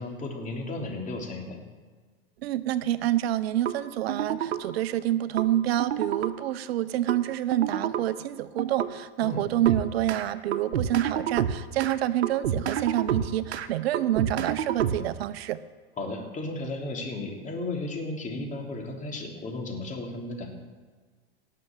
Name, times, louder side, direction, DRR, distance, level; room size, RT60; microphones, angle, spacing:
voice 1, 0.0-1.6 9.2-9.4 16.0-20.5, left 2 dB, 25° left, 1 dB, 3.2 m, -34 dB
voice 2, 2.4-15.6, right 13 dB, 70° right, 15 dB, 0.7 m, -27 dB
sound 1, 3.7-3.8 4.1-4.6 5.4-5.5 5.8-6.3 7.1-7.2 7.5-8.0 8.6-8.9 9.7-10.2 10.5-12.0 12.2-13.7 13.9-15.2, right 9 dB, 90° right, 1.0 m, -28 dB
17.5 x 6.8 x 7.3 m, 1.4 s
hypercardioid pair, 115°, 31 cm